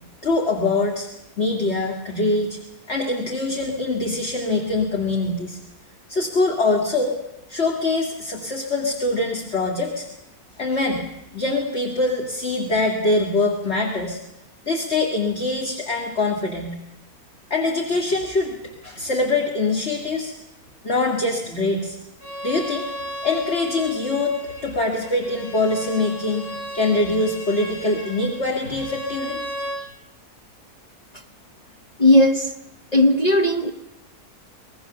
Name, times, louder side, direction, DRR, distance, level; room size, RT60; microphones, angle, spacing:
voice 1, 0.2-1.1 1.4-2.6 2.9-5.6 6.1-7.2 7.5-10.1 10.6-11.0 11.3-14.2 14.7-16.8 17.5-18.6 18.8-20.3 20.8-22.0 22.4-22.9 23.2-26.4 26.7-29.4, left 2 dB, 45° left, 1 dB, 2.5 m, -23 dB
Bowed string instrument, 22.2-29.8, right 1 dB, 80° left, 6.0 m, -35 dB
voice 2, 32.0-32.5 32.9-33.7, left 1 dB, 30° left, 4 dB, 1.3 m, -16 dB
25.0 x 19.5 x 7.0 m, 0.88 s
omnidirectional pair, 1.6 m